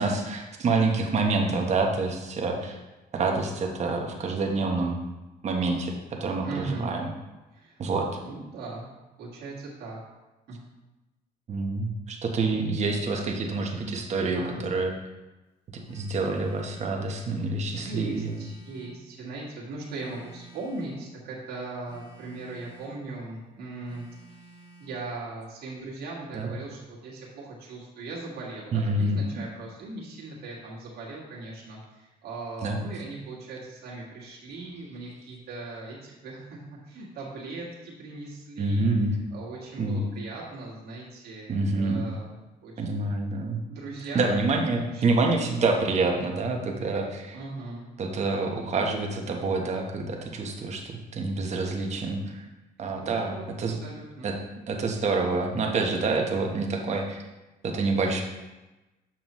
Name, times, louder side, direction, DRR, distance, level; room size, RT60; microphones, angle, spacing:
voice 1, 0.0-2.8 3.1-5.0 5.4-7.1 7.8-8.1 11.5-14.9 15.7-18.3 26.3-26.5 28.7-29.4 32.6-32.8 38.6-39.1 39.8-40.0 41.5-42.1 42.8-43.6 44.1-47.4 48.0-52.4 52.8-53.8 54.2-54.3 54.7-57.2 57.6-58.2, right 3 dB, 40° right, 2 dB, 1.1 m, -27 dB
voice 2, 6.4-6.9 7.5-7.8 8.2-10.0 10.5-10.6 14.3-14.6 17.2-24.1 24.3-43.1 43.7-44.3 44.7-45.1 47.3-47.9 52.9-54.3, right 3 dB, 75° right, -5 dB, 1.9 m, -39 dB
Telephone, 15.8-17.0 17.8-19.0 19.8-21.0 21.8-23.0 23.9-25.0, right 3 dB, 35° left, 1.6 m, -51 dB
7.3 x 5.9 x 3.1 m, 1.1 s
cardioid pair, 110°, 17 cm